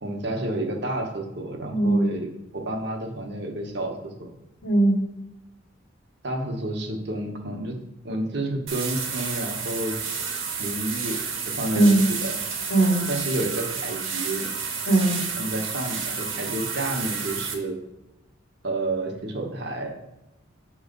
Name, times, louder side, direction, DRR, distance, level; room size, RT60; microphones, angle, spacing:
voice 1, 0.0-2.3 2.5-4.3 6.2-7.8 8.0-10.0 10.6-11.2 11.5-12.4 13.1-14.5 15.4-17.8 18.6-19.9, right 1 dB, 55° right, 3 dB, 0.9 m, -30 dB
voice 2, 1.7-2.1 4.6-5.0 11.7-12.0 12.7-13.0 14.9-15.2, right 2 dB, 85° left, 1 dB, 1.4 m, -19 dB
sound 1, 8.7-17.5, right 5 dB, 85° right, 1.1 m, -30 dB
7.0 x 3.1 x 5.2 m, 0.93 s
head